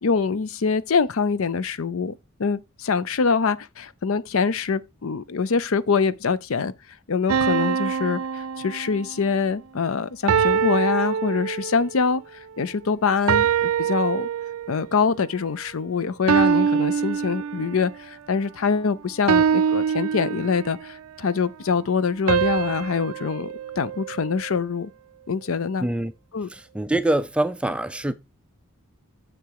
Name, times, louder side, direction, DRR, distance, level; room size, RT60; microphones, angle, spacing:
voice 1, 0.0-6.7 7.1-12.2 12.6-14.3 14.7-23.5 23.8-24.9 25.3-25.9 26.3-26.5, left 5 dB, 70° left, 0.5 m, -24 dB
sound 1, 7.3-9.2 10.3-11.9 13.3-14.9 16.3-18.0 19.3-20.9 22.3-24.6, right 7 dB, 80° right, 0.4 m, -24 dB
voice 2, 25.8-26.1 26.5-28.1, right 1 dB, 5° right, 0.4 m, -24 dB
7.4 x 6.7 x 4.8 m
head